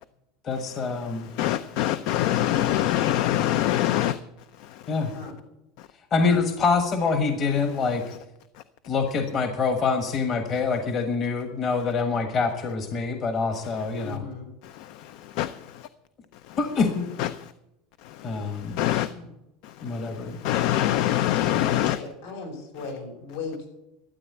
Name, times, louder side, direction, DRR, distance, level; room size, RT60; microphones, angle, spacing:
voice 1, 0.4-1.3 4.9-5.1 6.1-8.0 8.9-14.2 16.6-17.1 18.2-18.8 19.8-20.4, left 4 dB, 30° left, 7 dB, 1.3 m, -25 dB
voice 2, 1.1-4.2 4.6-4.9 14.0-14.2 14.6-15.9 16.5-16.6 17.2-17.3 18.0-19.1 19.6-22.0, left 13 dB, 55° left, 14 dB, 0.5 m, -25 dB
voice 3, 14.0-14.5 19.1-19.3 21.8-23.7, left 4 dB, 75° left, 2 dB, 5.9 m, -37 dB
13.0 x 8.6 x 8.4 m, 0.88 s
supercardioid pair, 165°, 0 cm